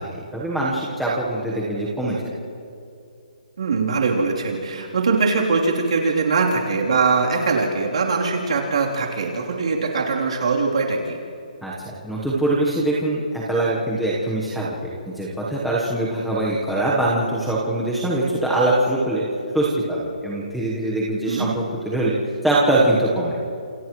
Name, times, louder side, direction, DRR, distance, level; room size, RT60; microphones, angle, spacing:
voice 1, 0.0-2.2 11.6-11.7 12.0-19.2 19.5-22.1 22.4-23.4, right 1 dB, ahead, -8 dB, 1.1 m, -23 dB
voice 2, 3.6-11.2 21.3-21.5, right 4 dB, 50° right, -2 dB, 3.3 m, -22 dB
29.5 x 28.0 x 3.1 m, 2.5 s
hypercardioid pair, 180°, 4 cm